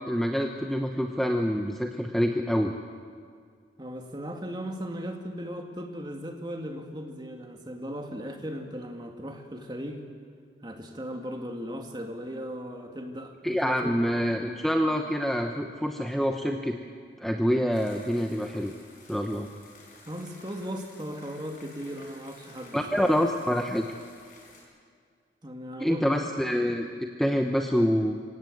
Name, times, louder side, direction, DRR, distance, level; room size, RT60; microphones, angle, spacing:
voice 1, 0.0-2.7 13.4-16.8 17.2-18.7 19.1-19.5 22.7-23.9 25.8-28.2, equal, ahead, 3 dB, 0.8 m, -26 dB
voice 2, 3.8-10.0 10.6-14.0 20.1-23.3 25.4-26.2, equal, 25° right, 3 dB, 2.1 m, -37 dB
sound 1, 17.7-24.6, left 2 dB, 45° left, 6.0 m, -53 dB
26.0 x 17.0 x 8.0 m, 2.1 s
head